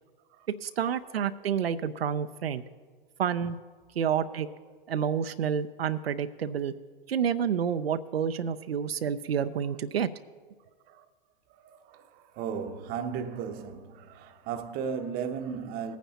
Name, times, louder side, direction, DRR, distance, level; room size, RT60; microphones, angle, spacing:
voice 1, 0.6-2.6 3.2-3.6 4.0-4.5 4.9-6.7 7.1-10.1, right 8 dB, 85° right, 0.5 m, -29 dB
voice 2, 4.2-4.6 10.9-11.1 11.5-16.0, right 6 dB, 30° right, 0.7 m, -36 dB
18.5 x 9.1 x 2.8 m
hypercardioid pair, 115°, 30 cm